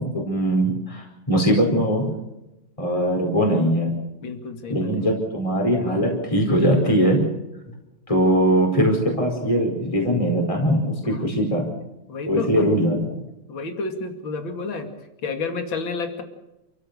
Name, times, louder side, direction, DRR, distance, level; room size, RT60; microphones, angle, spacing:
voice 1, 0.0-2.1 2.8-4.1 4.7-7.2 8.1-11.7 12.3-13.1, equal, 15° left, 1 dB, 4.9 m, -21 dB
voice 2, 4.2-5.1 7.7-7.8 11.0-11.3 12.1-12.5 13.5-14.9 15.2-16.2, left 4 dB, 65° left, 6 dB, 3.2 m, -30 dB
29.5 x 15.5 x 6.8 m, 0.96 s
omnidirectional pair, 2.3 m